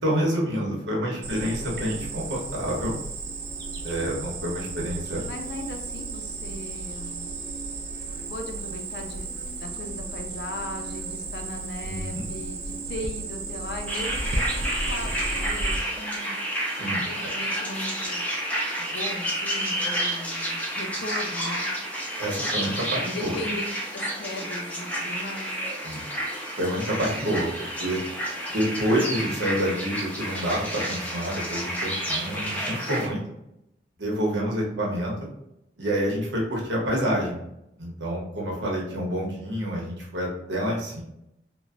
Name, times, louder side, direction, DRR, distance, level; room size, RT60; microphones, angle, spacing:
voice 1, 0.0-2.9 3.8-5.2 11.8-12.3 16.8-17.0 22.2-23.3 25.8-26.0 26.6-28.0 28.5-33.2 34.0-35.1 35.8-37.4 37.8-41.0, equal, 90° right, -2 dB, 0.9 m, -28 dB
voice 2, 0.5-1.3 5.3-7.3 8.3-16.3 17.0-18.2 18.8-21.7 23.0-23.6 23.9-25.5, left 1 dB, 65° left, 4 dB, 0.5 m, -37 dB
Cricket, 1.2-15.8, right 3 dB, 60° right, 0.4 m, -34 dB
sound 1, 13.9-33.1, right 1 dB, 10° left, 0.5 m, -30 dB
3.1 x 2.1 x 2.4 m, 0.81 s
head